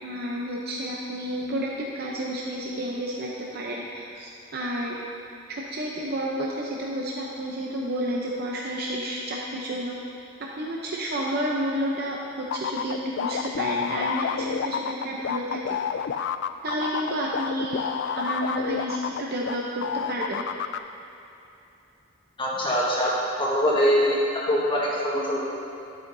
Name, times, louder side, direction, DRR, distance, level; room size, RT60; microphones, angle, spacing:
voice 1, 0.0-5.0 5.5-10.0 10.4-12.2 12.5-15.8 16.6-17.9 18.2-20.4, equal, 55° right, -3 dB, 0.7 m, -30 dB
sound 1, 12.5-19.6 19.8-20.8, left 7 dB, 60° left, 0.3 m, -29 dB
voice 2, 22.4-23.1 23.4-24.2 24.5-25.4, equal, 25° left, -5 dB, 1.5 m, -23 dB
12.0 x 8.6 x 2.7 m, 2.8 s
head